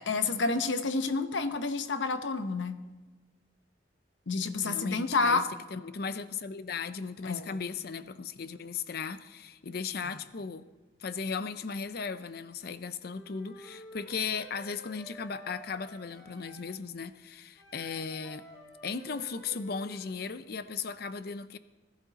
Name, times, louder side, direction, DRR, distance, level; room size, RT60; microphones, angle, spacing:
voice 1, 0.0-2.7 4.3-5.4 7.2-7.7 10.0-10.2, left 3 dB, 80° left, 0.9 m, -29 dB
voice 2, 4.6-5.4 5.7-10.7 11.0-18.5 18.8-21.6, left 5 dB, 55° left, 0.6 m, -37 dB
Wind instrument woodwind instrument, 13.1-16.7 17.6-20.1, equal, 20° left, 3.1 m, -51 dB
20.5 x 11.5 x 4.1 m
head